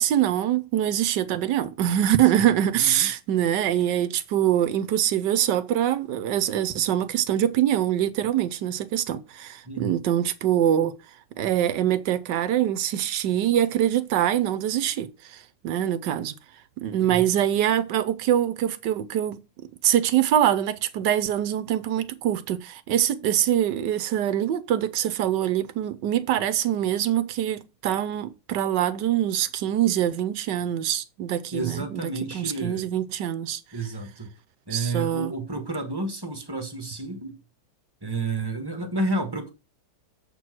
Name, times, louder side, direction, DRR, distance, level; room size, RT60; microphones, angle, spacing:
voice 1, 0.0-10.9 11.4-16.3 16.8-33.6 34.7-35.3, right 11 dB, 70° right, 1.3 m, -24 dB
voice 2, 2.8-3.1 9.6-10.0 17.0-17.2 31.5-32.8 33.7-34.3 34.7-37.4 38.0-39.5, right 2 dB, 15° right, 1.3 m, -30 dB
7.6 x 4.5 x 6.0 m
omnidirectional pair, 2.1 m